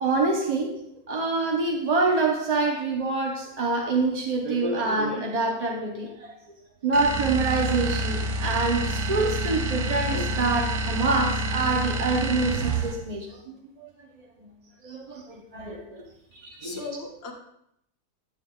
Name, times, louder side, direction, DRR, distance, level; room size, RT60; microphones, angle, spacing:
voice 1, 0.0-6.3 6.8-13.9 14.4-14.5 14.8-16.1 16.3-16.8, right 3 dB, 45° right, 1 dB, 0.5 m, -26 dB
sound 1, 6.9-13.1, right 1 dB, 75° right, 1.1 m, -28 dB
voice 2, 16.4-17.3, left 3 dB, 45° left, 0 dB, 1.4 m, -38 dB
9.3 x 8.9 x 2.3 m, 0.77 s
omnidirectional pair, 1.7 m